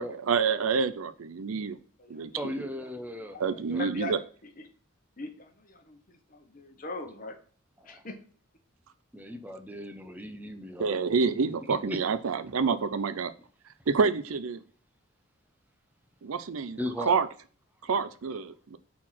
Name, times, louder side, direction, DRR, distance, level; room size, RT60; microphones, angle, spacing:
voice 1, 0.0-1.8 2.1-2.5 3.4-4.2 10.8-13.3 13.9-14.6 16.2-16.8 17.1-17.3 17.8-18.8, right 5 dB, 80° right, 12 dB, 0.5 m, -28 dB
voice 2, 2.4-3.4 3.7-3.9 7.8-8.0 9.1-11.0 11.9-12.0 16.8-17.1, left 1 dB, 10° right, 7 dB, 0.6 m, -37 dB
voice 3, 3.3-4.6 5.2-7.4 7.8-8.2, left 2 dB, 40° left, 6 dB, 1.0 m, -41 dB
4.6 x 4.2 x 5.7 m, 0.41 s
head